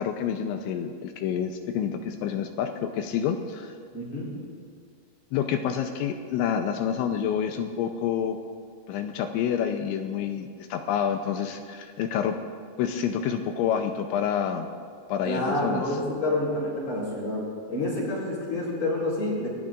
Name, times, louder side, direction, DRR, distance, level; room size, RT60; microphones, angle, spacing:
voice 1, 0.0-3.7 5.3-8.4 8.9-12.4 12.8-14.7 15.1-15.8, left 8 dB, 85° left, 5 dB, 2.9 m, -28 dB
voice 2, 3.9-4.4 15.2-19.5, left 1 dB, 35° left, -5 dB, 4.7 m, -28 dB
26.5 x 19.0 x 2.5 m, 2.1 s
omnidirectional pair, 5.6 m